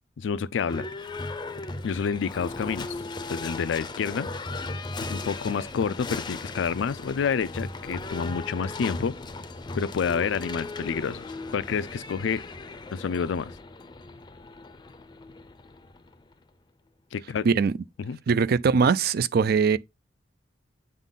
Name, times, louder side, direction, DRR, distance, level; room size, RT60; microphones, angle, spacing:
voice 1, 0.2-0.9 1.8-3.0 3.3-4.3 5.0-9.2 9.7-12.4 12.9-13.5 17.1-17.5 18.0-18.2, left 6 dB, 85° left, 0.4 m, -29 dB
Livestock farm animals working animals / Bell, 0.5-16.4, left 3 dB, 25° left, 0.5 m, -37 dB
voice 2, 18.3-19.8, right 5 dB, 55° right, 0.4 m, -21 dB
8.1 x 3.8 x 3.8 m
head